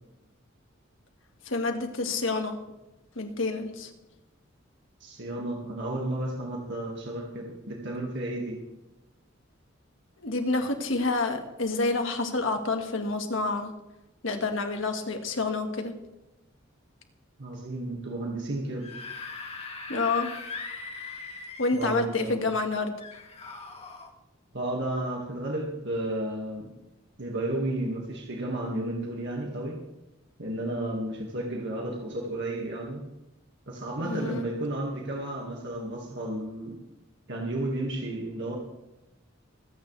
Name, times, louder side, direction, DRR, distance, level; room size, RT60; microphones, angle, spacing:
voice 1, 1.4-2.6 3.2-3.9 10.2-13.7 14.2-15.9 19.9-20.3 21.6-22.9 34.1-34.5, left 3 dB, 70° left, 4 dB, 1.9 m, -28 dB
voice 2, 5.0-8.6 17.4-18.9 21.7-22.4 24.5-26.7 27.2-29.8 30.4-33.0 33.7-36.8 37.3-38.6, right 1 dB, 60° right, -1 dB, 2.0 m, -32 dB
Screaming / Screech, 18.7-22.0 23.0-24.1, left 4 dB, 30° left, 1.7 m, -40 dB
24.5 x 9.1 x 3.4 m, 0.98 s
head